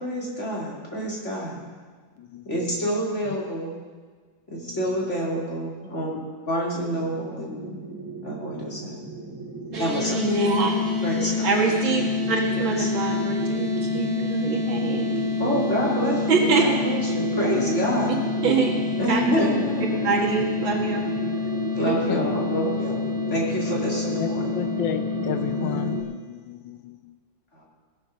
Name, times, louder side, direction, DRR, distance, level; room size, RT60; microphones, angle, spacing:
voice 1, 0.0-1.6 2.5-3.7 4.5-6.2 6.5-7.8 8.2-9.0 9.8-10.3 11.0-11.5 12.5-12.9 15.4-18.2 19.0-20.1 21.8-24.4 27.5-27.6, equal, 35° left, -4 dB, 3.0 m, -27 dB
voice 2, 2.2-2.8 4.5-5.1 8.5-8.8 9.5-10.1 21.7-22.3 24.1-27.2, left 11 dB, 75° left, 11 dB, 1.3 m, -34 dB
sound 1, 6.8-26.0, right 4 dB, 15° right, 0.8 m, -34 dB
sound 2, 9.7-26.0, left 5 dB, 45° right, 2.1 m, -28 dB
voice 3, 10.1-10.7 11.4-15.2 16.3-16.6 18.4-18.8 19.1-19.2 20.0-21.1 21.9-22.0, right 5 dB, 80° right, -1 dB, 2.6 m, -24 dB
17.5 x 7.2 x 5.8 m, 1.5 s
omnidirectional pair, 2.2 m